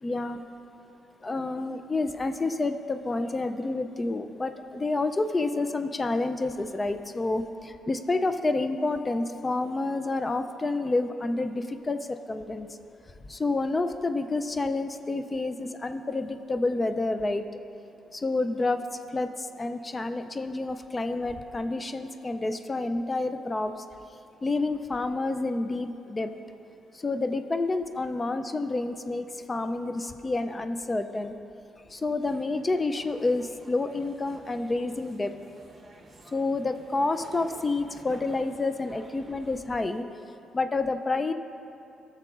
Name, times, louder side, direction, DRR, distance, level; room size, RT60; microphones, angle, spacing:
voice 1, 0.0-0.4 1.2-12.7 13.3-17.5 18.1-18.8 19.1-23.7 24.4-26.3 27.0-31.3 31.9-35.3 36.3-40.1 40.5-41.3, left 2 dB, 25° left, 9 dB, 0.3 m, -29 dB
sound 1, 32.2-39.6, right 2 dB, 35° right, 0.9 m, -52 dB
14.5 x 6.7 x 2.4 m, 2.8 s
cardioid pair, 90°, 0 cm